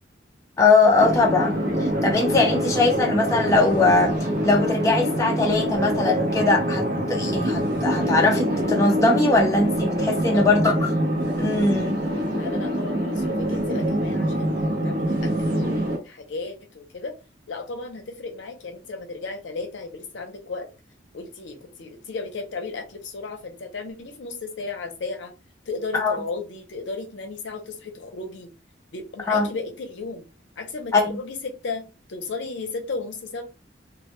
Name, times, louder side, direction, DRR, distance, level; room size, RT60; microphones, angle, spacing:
voice 1, 0.6-4.1 4.4-10.8 11.4-12.0 25.9-26.2 29.3-29.5 30.9-31.2, left 3 dB, 15° left, 0.3 m, -21 dB
sound 1, 1.0-16.0, equal, 55° right, 0.6 m, -25 dB
voice 2, 10.3-10.7 12.3-17.1 17.5-20.7 21.1-25.3 25.7-28.5 28.9-30.3 30.6-33.4, left 3 dB, 70° left, 0.5 m, -34 dB
2.1 x 2.0 x 2.9 m
head